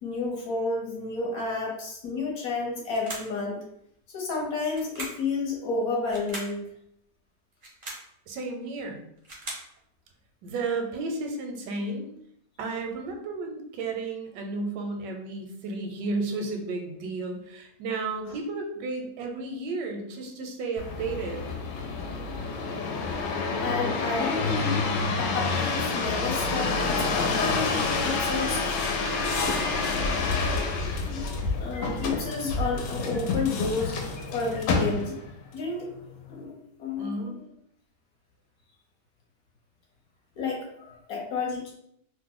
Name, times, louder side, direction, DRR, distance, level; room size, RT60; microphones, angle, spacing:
voice 1, 0.0-3.6 4.1-6.6 18.3-18.4 23.4-24.8 25.2-28.6 31.0-35.2 35.5-35.9 36.3-36.5 36.8-37.1 37.4-37.5 40.4-41.7, left 3 dB, 65° left, -1 dB, 1.1 m, -31 dB
sound 1, 2.9-3.4 4.7-5.3 6.1-6.6 7.5-8.1 9.0-9.7, right 2 dB, 45° right, 0.5 m, -39 dB
voice 2, 8.3-9.0 10.4-12.1 12.6-21.5 37.0-37.4, right 3 dB, 85° right, 3 dB, 1.2 m, -33 dB
sound 2, 20.8-35.3 35.9-36.4, left 4 dB, 85° left, 1.2 m, -28 dB
3.0 x 2.1 x 3.6 m, 0.73 s
omnidirectional pair, 1.8 m